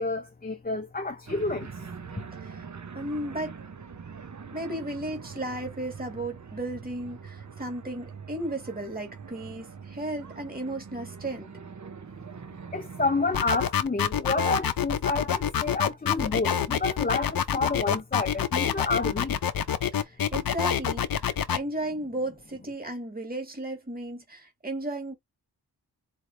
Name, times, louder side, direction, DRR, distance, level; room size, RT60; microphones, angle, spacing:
voice 1, 0.0-1.7 2.2-2.3 12.7-19.4, left 3 dB, 20° left, 0.7 m, -29 dB
sound 1, 1.3-13.4, right 6 dB, 45° right, 0.9 m, -43 dB
voice 2, 2.3-2.7 2.9-3.6 4.5-11.5 19.9-25.2, right 1 dB, 20° right, 2.0 m, -35 dB
sound 2, 13.3-21.6, left 8 dB, 60° left, 0.7 m, -26 dB
4.5 x 2.9 x 2.6 m
cardioid pair, 50°, 39 cm